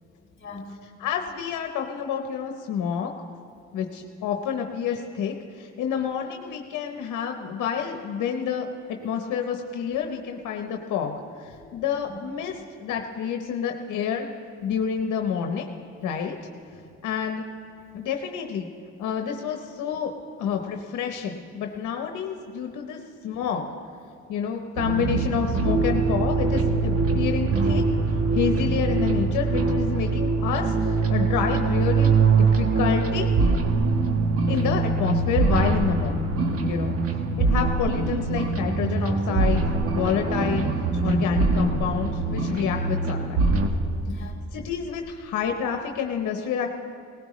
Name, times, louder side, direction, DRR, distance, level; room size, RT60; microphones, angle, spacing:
voice 1, 0.4-0.7 11.6-12.2 16.7-17.0 34.5-34.8 37.0-37.4 42.5-42.6 44.0-44.4, left 2 dB, 40° left, 0 dB, 2.7 m, -41 dB
voice 2, 1.0-3.1 3.7-8.7 9.0-14.3 14.6-15.7 16.0-16.4 17.0-17.4 17.9-18.7 19.0-20.1 20.4-23.6 24.3-27.8 28.3-33.3 34.5-36.1 36.6-37.0 37.4-39.6 39.9-40.7 41.0-43.4 44.5-46.7, left 7 dB, 85° left, 4 dB, 0.9 m, -28 dB
sound 1, 24.8-43.7, right 4 dB, 50° right, 1.2 m, -23 dB
18.5 x 16.0 x 3.1 m, 2.5 s
cardioid pair, 90°, 30 cm